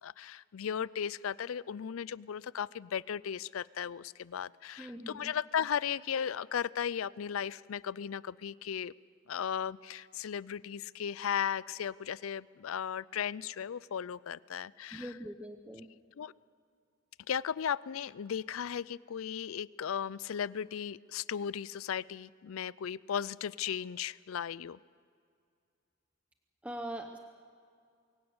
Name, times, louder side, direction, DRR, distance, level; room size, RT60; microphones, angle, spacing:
voice 1, 0.0-8.9 9.3-15.1 16.2-16.3 17.3-24.8, left 8 dB, 85° left, 21 dB, 0.4 m, -36 dB
voice 2, 4.8-5.3 14.9-15.9 26.6-27.2, right 1 dB, 5° right, 5 dB, 0.8 m, -42 dB
23.0 x 16.5 x 7.9 m, 2.2 s
head